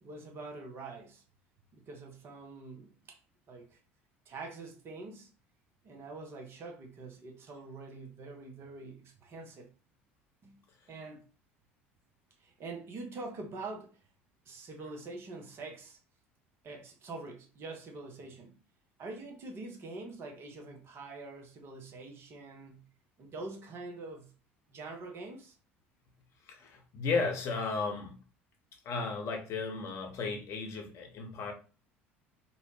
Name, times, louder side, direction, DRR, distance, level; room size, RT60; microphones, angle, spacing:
voice 1, 0.0-1.2 1.7-3.2 3.5-3.8 4.3-5.3 5.8-9.7 10.4-10.6 10.9-11.3 12.4-14.0 14.5-16.0 16.6-18.6 19.0-22.9 23.2-24.3 24.7-25.6, right 3 dB, 40° right, 0.6 m, -45 dB
voice 2, 26.5-28.2 28.8-31.5, left 4 dB, 45° left, 0.7 m, -34 dB
2.6 x 2.0 x 3.0 m
figure-of-eight pair, 65°, 6 cm